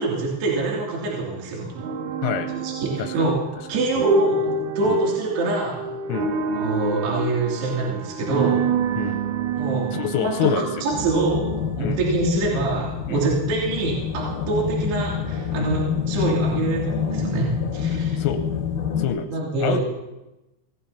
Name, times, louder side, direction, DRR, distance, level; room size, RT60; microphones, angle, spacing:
voice 1, 0.0-1.8 2.6-3.3 3.7-4.4 4.8-5.9 6.5-8.6 9.6-9.9 10.2-11.5 11.8-18.2 19.3-19.8, right 3 dB, 60° right, -5 dB, 4.6 m, -25 dB
sound 1, 1.8-11.8, right 4 dB, 75° right, 3.5 m, -27 dB
voice 2, 2.2-2.5 3.0-3.3 4.0-4.1 4.8-5.0 6.1-6.3 9.0-9.2 9.9-10.7 11.8-12.0 13.1-13.2 15.6-15.8 17.9-18.4 19.0-19.3 19.6-19.8, left 9 dB, 85° left, 5 dB, 3.4 m, -27 dB
sound 2, 10.9-19.1, left 7 dB, 60° left, 2.8 m, -27 dB
26.5 x 18.5 x 2.9 m, 0.99 s
omnidirectional pair, 5.9 m